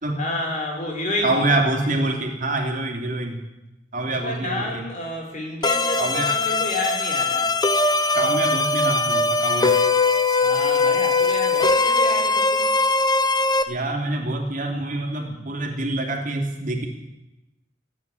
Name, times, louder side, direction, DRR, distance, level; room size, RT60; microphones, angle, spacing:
voice 1, 0.2-1.7 4.2-7.5 10.4-12.7, left 1 dB, 40° left, 0 dB, 4.7 m, -29 dB
voice 2, 1.2-3.4 3.9-4.8 6.0-6.3 8.1-9.8 13.7-16.9, right 2 dB, 45° right, 2 dB, 2.9 m, -25 dB
sound 1, 5.6-13.6, left 3 dB, 20° left, 0.9 m, -20 dB
15.0 x 9.3 x 9.9 m, 0.96 s
head